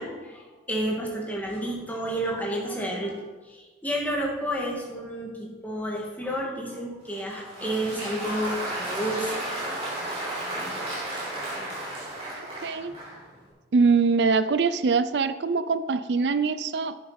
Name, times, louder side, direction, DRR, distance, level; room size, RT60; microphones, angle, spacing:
voice 1, 0.0-3.2 3.4-9.5 10.7-11.0, right 1 dB, 10° left, -2 dB, 2.4 m, -31 dB
Applause, 7.1-13.3, right 1 dB, 35° right, 4.1 m, -33 dB
voice 2, 12.4-12.9 13.7-17.0, right 4 dB, 75° right, 13 dB, 0.5 m, -23 dB
11.0 x 9.4 x 5.3 m, 1.3 s
head